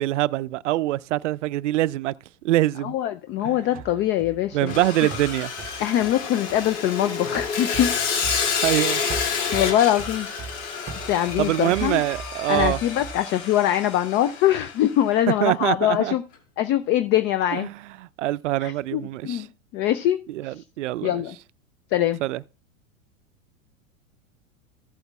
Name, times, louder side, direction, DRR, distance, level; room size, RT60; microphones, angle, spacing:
voice 1, 0.0-2.1 2.4-3.0 3.4-3.6 4.5-5.5 8.6-9.0 11.4-12.8 15.4-16.2 17.5-19.5 20.3-21.2 22.2-22.4, right 15 dB, 65° right, 0.5 m, -24 dB
voice 2, 2.8-4.8 5.8-7.9 9.5-10.3 11.1-12.0 12.5-16.2 16.6-17.7 18.6-19.5 19.7-20.5 21.0-21.4 21.9-22.2, left 12 dB, 30° left, 0.5 m, -23 dB
sound 1, 3.7-7.0 7.3-8.8 9.1-13.2, right 5 dB, 20° right, 0.8 m, -38 dB
Sawing, 4.7-14.9, left 6 dB, 60° left, 2.6 m, -29 dB
Wind instrument woodwind instrument, 10.5-14.6, left 2 dB, 80° left, 4.8 m, -46 dB
15.0 x 7.8 x 2.3 m
figure-of-eight pair, 95°, 40 cm